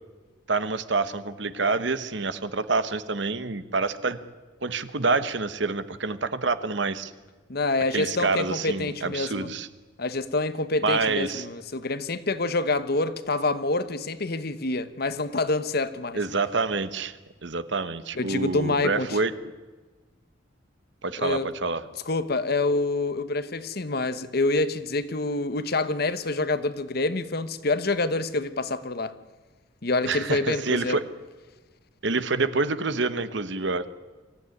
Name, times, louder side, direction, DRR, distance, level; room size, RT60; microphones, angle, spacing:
voice 1, 0.5-4.2 4.6-7.1 7.9-9.7 10.8-11.5 16.1-19.3 21.0-21.8 30.1-31.0 32.0-33.9, right 3 dB, 60° right, 13 dB, 1.1 m, -27 dB
voice 2, 7.5-9.5 10.0-16.2 18.2-19.2 21.2-21.5 22.1-29.1 29.8-31.0, left 2 dB, 50° left, 13 dB, 1.1 m, -27 dB
24.0 x 15.0 x 9.7 m, 1.3 s
head